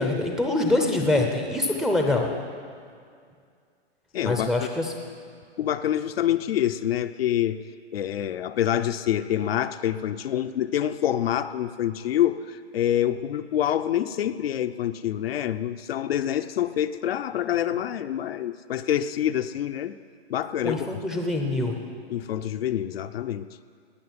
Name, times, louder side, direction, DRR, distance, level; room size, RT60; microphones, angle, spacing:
voice 1, 0.0-2.3 4.2-4.9 20.6-21.7, left 2 dB, ahead, 2 dB, 0.7 m, -24 dB
voice 2, 4.1-4.7 5.6-7.6 7.9-19.9 20.3-21.0 22.1-23.5, left 11 dB, 60° left, 9 dB, 0.7 m, -26 dB
18.5 x 6.6 x 9.6 m, 2.2 s
hypercardioid pair, 155°, 34 cm